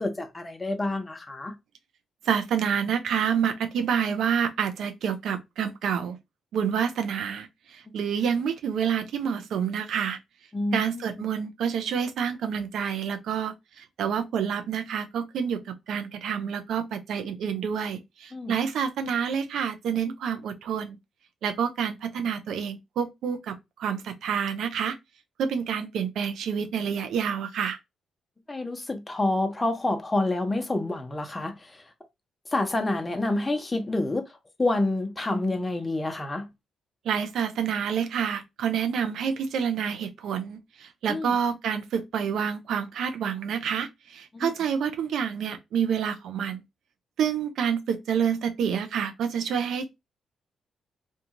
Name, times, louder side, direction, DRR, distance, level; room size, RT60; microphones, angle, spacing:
voice 1, 0.0-1.5 7.9-8.0 10.5-11.0 18.3-18.5 28.5-31.5 32.5-34.2 34.6-36.5 41.1-41.3 44.4-44.5, left 2 dB, 25° left, 0.7 m, -28 dB
voice 2, 2.3-6.2 6.5-10.2 10.7-15.6 15.9-21.0 21.4-25.0 25.4-27.8 37.1-46.6 47.2-49.9, right 7 dB, 75° right, 0.5 m, -28 dB
2.6 x 2.3 x 2.9 m
supercardioid pair, 60°, 0 cm